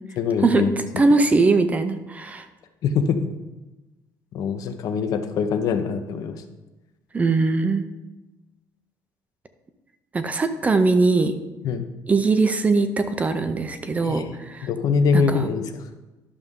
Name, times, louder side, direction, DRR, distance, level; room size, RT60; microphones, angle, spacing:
voice 1, 0.2-0.7 2.8-3.3 4.3-6.4 11.6-11.8 14.0-14.2 14.6-15.9, left 5 dB, 55° left, 8 dB, 0.8 m, -23 dB
voice 2, 1.0-2.5 7.1-7.8 10.1-11.3 12.1-14.7 15.1-15.5, right 3 dB, 20° right, 9 dB, 0.6 m, -21 dB
11.5 x 6.6 x 3.7 m, 1.1 s
cardioid pair, 150°, 7 cm